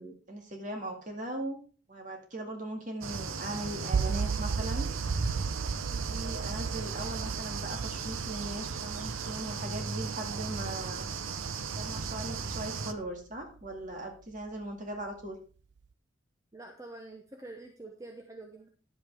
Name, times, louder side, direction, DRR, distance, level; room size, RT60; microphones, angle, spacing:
voice 1, 0.0-1.6 1.9-4.9 5.7-11.1 11.7-15.4, right 1 dB, 40° right, 3 dB, 2.1 m, -39 dB
sound 1, 3.0-12.9, right 5 dB, 85° right, 0.8 m, -36 dB
sound 2, 3.9-13.9, right 5 dB, 60° right, 0.4 m, -36 dB
voice 2, 16.5-18.7, right 2 dB, 15° right, 3 dB, 0.8 m, -46 dB
10.5 x 8.0 x 3.5 m, 0.38 s
head